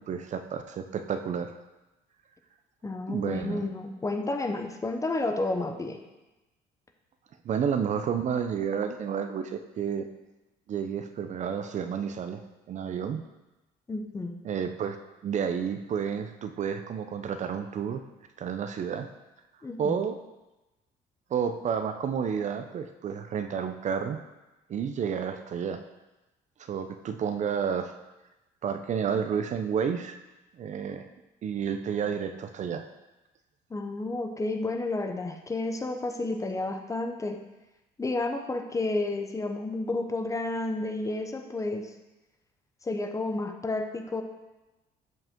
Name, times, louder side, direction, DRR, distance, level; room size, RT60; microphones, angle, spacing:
voice 1, 0.0-1.5 3.1-3.6 7.4-10.1 10.7-12.4 12.7-13.2 14.4-15.0 15.2-18.0 18.4-19.1 19.8-20.2 21.3-24.2 24.7-25.8 26.6-27.9 28.6-30.2 30.6-31.0 31.4-32.9, right 7 dB, 45° right, 8 dB, 0.5 m, -30 dB
voice 2, 2.8-6.0 13.9-14.4 19.6-20.0 33.7-37.4 38.0-41.9 42.8-44.2, left 2 dB, 20° left, 5 dB, 0.7 m, -31 dB
7.4 x 5.3 x 3.6 m, 1.0 s
cardioid pair, 110°, 17 cm